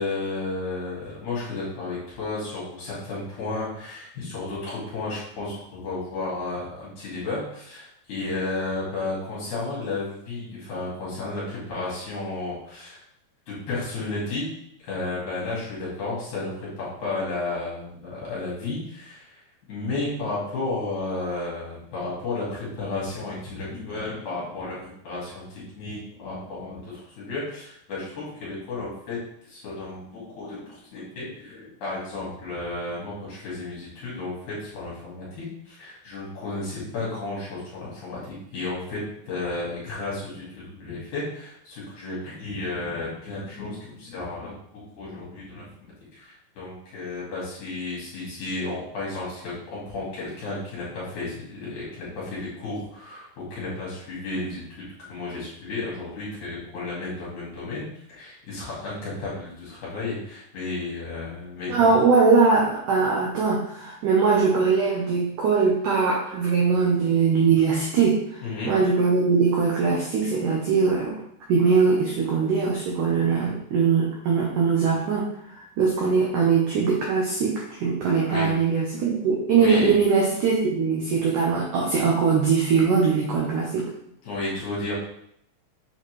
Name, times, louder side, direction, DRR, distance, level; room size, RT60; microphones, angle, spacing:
voice 1, 0.0-13.0 13.5-14.5 14.8-19.4 19.7-45.7 46.1-61.9 68.4-68.7 78.3-78.5 79.6-79.9 84.2-84.9, left 3 dB, 50° left, -7 dB, 3.1 m, -33 dB
voice 2, 61.7-71.1 71.5-83.9, right 5 dB, 80° right, -3 dB, 1.8 m, -21 dB
7.1 x 4.2 x 3.2 m, 0.72 s
omnidirectional pair, 4.9 m